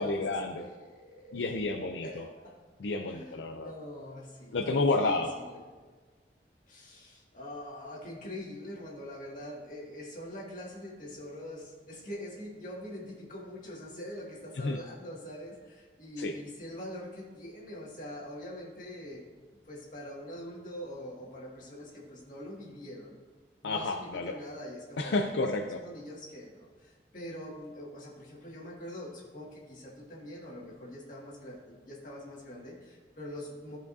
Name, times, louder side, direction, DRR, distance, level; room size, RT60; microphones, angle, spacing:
voice 1, 0.0-0.7 1.3-2.3 2.8-3.7 4.5-5.3 14.6-14.8 16.2-16.3 23.6-24.3 25.0-25.8, left 2 dB, 85° left, 4 dB, 0.5 m, -30 dB
voice 2, 0.6-2.6 3.1-3.3 3.6-4.6 5.0-5.6 6.7-19.2 19.7-23.2 23.6-25.3 25.8-33.8, left 1 dB, 45° left, -5 dB, 2.0 m, -44 dB
14.5 x 5.0 x 2.7 m, 1.4 s
head